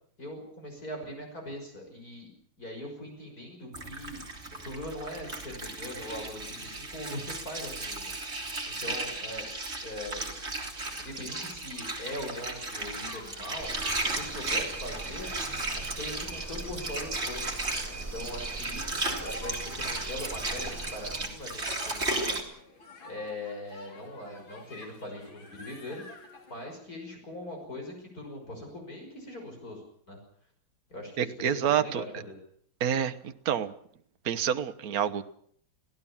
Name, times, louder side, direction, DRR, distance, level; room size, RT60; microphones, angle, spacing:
voice 1, 0.2-2.3 2.6-4.2 4.5-10.4 11.0-13.7 14.0-15.3 15.7-17.5 18.1-22.4 23.0-26.0 26.5-30.2 30.9-32.3, left 1 dB, 45° left, 2 dB, 6.4 m, -41 dB
Water, 3.7-22.4, right 2 dB, 30° right, 3.8 m, -35 dB
sound 1, 10.1-26.8, left 2 dB, 85° left, 4.3 m, -52 dB
sound 2, 13.6-21.3, right 2 dB, 10° right, 2.2 m, -41 dB
voice 2, 31.2-32.0 32.8-33.7 34.2-35.2, right 9 dB, 55° right, 9 dB, 1.5 m, -28 dB
25.0 x 17.0 x 7.3 m, 0.62 s
omnidirectional pair, 2.1 m